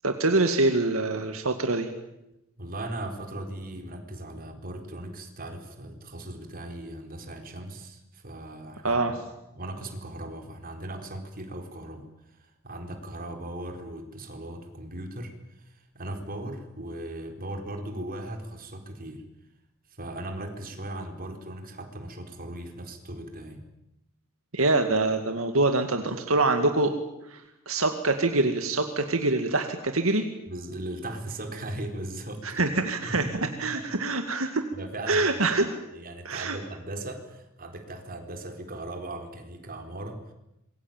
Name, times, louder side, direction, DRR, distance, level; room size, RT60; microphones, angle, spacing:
voice 1, 0.0-1.9 8.8-9.1 24.5-26.9 27.3-30.2 32.4-33.2 33.6-34.6 35.1-35.7 36.3-36.6, right 2 dB, 75° right, 6 dB, 2.2 m, -25 dB
voice 2, 2.6-9.3 9.5-19.2 20.0-23.6 30.5-32.7 33.0-33.8 34.7-35.4 35.9-40.3, right 1 dB, 45° right, 4 dB, 4.4 m, -38 dB
26.5 x 22.5 x 9.2 m, 0.88 s
head